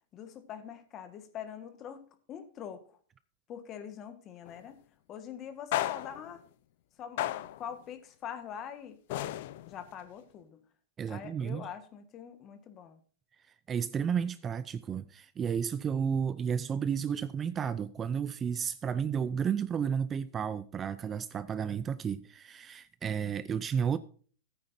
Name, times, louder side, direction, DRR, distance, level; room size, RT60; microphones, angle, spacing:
voice 1, 0.0-3.0 3.5-4.8 5.1-6.5 7.0-10.6 11.1-13.0, left 8 dB, 30° left, 1.6 m, -44 dB
sound 1, 4.5-4.7 5.7-6.4 7.2-7.7 9.1-9.9, left 14 dB, 60° left, 0.6 m, -34 dB
voice 2, 11.0-11.7 13.7-24.0, right 7 dB, 20° right, 0.5 m, -32 dB
15.0 x 8.9 x 2.7 m
hypercardioid pair, 135°, 0 cm